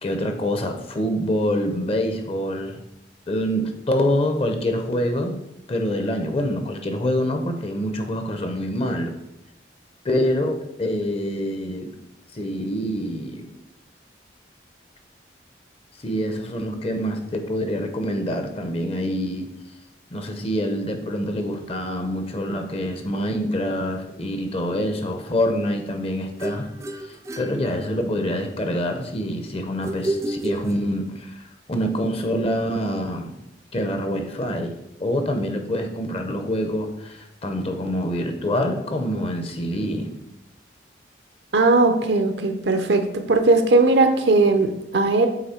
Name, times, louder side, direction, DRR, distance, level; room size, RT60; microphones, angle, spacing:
voice 1, 0.0-2.8 3.3-5.4 5.7-9.1 10.0-11.9 12.3-13.5 16.0-19.5 20.1-26.7 27.0-33.4 33.7-40.1, equal, 30° left, 6 dB, 0.6 m, -26 dB
sound 1, 26.4-28.3 29.8-31.4, right 1 dB, 15° right, 0.3 m, -31 dB
voice 2, 41.5-45.3, right 3 dB, 70° right, 7 dB, 0.6 m, -18 dB
7.8 x 3.1 x 4.3 m, 0.85 s
head